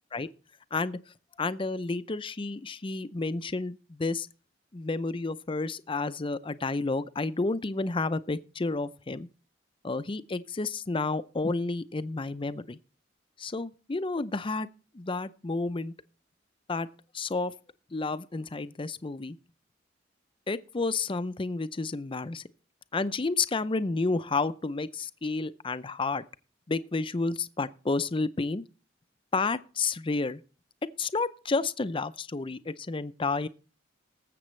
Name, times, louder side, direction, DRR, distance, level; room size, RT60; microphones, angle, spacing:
voice 1, 1.4-4.3 4.7-9.3 9.8-12.8 13.4-14.7 14.9-15.9 16.7-16.9 17.1-17.5 17.9-19.4 20.5-22.4 22.9-26.2 26.7-28.6 29.3-30.4 31.0-33.5, left 3 dB, 30° left, 0.5 m, -30 dB
20.0 x 7.7 x 3.2 m
head